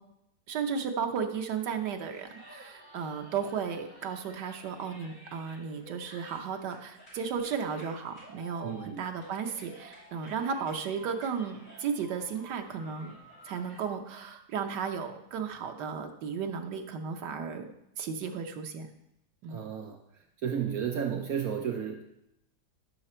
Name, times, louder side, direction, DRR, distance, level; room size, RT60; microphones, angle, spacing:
voice 1, 0.5-13.1 13.4-17.7 18.0-18.9 19.4-19.6, right 6 dB, 85° right, 5 dB, 1.5 m, -34 dB
sound 1, 1.8-13.8, equal, 35° left, 4.9 m, -52 dB
voice 2, 8.6-9.0 19.5-20.0 20.4-22.0, right 8 dB, 65° right, 4 dB, 1.2 m, -32 dB
12.5 x 5.9 x 4.4 m, 0.81 s
omnidirectional pair, 1.8 m